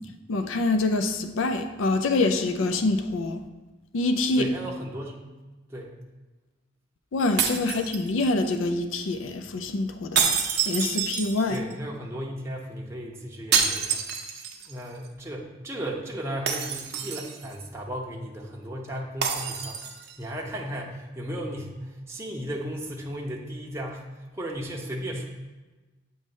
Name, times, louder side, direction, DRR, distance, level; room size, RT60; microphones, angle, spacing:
voice 1, 0.3-3.4 3.9-4.5 7.1-10.3 10.7-11.6, left 2 dB, 80° left, 7 dB, 0.4 m, -25 dB
voice 2, 4.4-5.3 5.7-5.9 11.5-14.0 14.7-19.8 20.2-24.0 24.3-25.3, equal, 15° right, -2 dB, 0.6 m, -35 dB
sound 1, 7.4-8.5 10.1-11.7 13.5-14.7 15.0-15.1 16.5-17.5 19.2-20.1, right 7 dB, 55° right, 0.7 m, -27 dB
7.7 x 3.1 x 5.3 m, 1.2 s
head